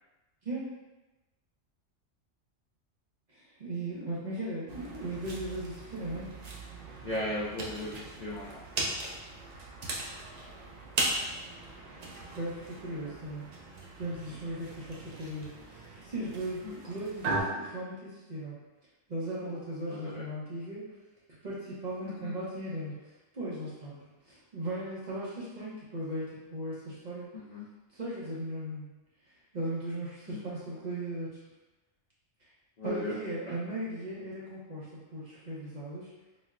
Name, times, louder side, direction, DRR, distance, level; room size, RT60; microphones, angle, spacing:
voice 1, 3.3-6.3 12.2-13.4 14.0-18.6 19.1-20.8 21.4-24.0 24.2-27.3 27.9-28.9 29.5-31.4 32.8-36.1, right 1 dB, 45° right, -7 dB, 0.7 m, -37 dB
sound 1, 4.7-17.4, right 2 dB, 90° right, 0.3 m, -38 dB
voice 2, 7.0-8.6 13.0-13.1 16.6-16.7 19.4-19.6 19.9-20.2 22.0-22.3 27.3-27.7 30.3-30.4 32.8-33.1, left 1 dB, 60° left, -6 dB, 0.4 m, -37 dB
3.9 x 2.1 x 2.4 m, 1.1 s
omnidirectional pair, 1.3 m